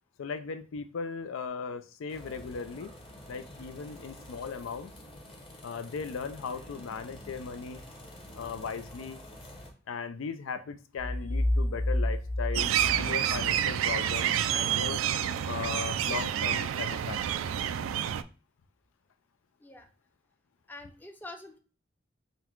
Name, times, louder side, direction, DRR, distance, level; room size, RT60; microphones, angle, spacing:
voice 1, 0.2-2.9 3.3-4.9 5.6-7.8 8.3-9.2 9.9-15.0 15.5-17.2, left 5 dB, 85° left, 0.4 m, -37 dB
sound 1, 2.1-9.7, left 1 dB, 30° left, 0.9 m, -48 dB
sound 2, 11.0-13.8, left 1 dB, 50° left, 1.4 m, -29 dB
sound 3, 12.5-18.2, right 10 dB, 85° right, 0.3 m, -29 dB
voice 2, 20.7-21.6, left 2 dB, 10° left, 0.5 m, -45 dB
3.9 x 2.2 x 4.4 m
head